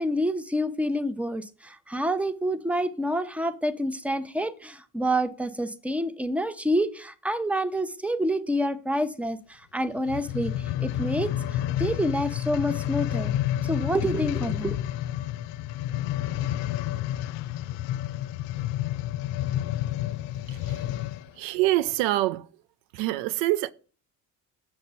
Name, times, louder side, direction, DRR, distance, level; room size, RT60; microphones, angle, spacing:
voice 1, 0.0-13.3 13.6-14.8, equal, 5° right, 0.9 m, -28 dB
sound 1, 10.0-21.3 21.9-22.0, left 13 dB, 70° left, 0.6 m, -30 dB
voice 2, 20.5-20.9 21.3-22.5 22.9-23.7, right 16 dB, 70° right, 0.6 m, -26 dB
7.9 x 6.6 x 4.1 m
hypercardioid pair, 60°, 45 cm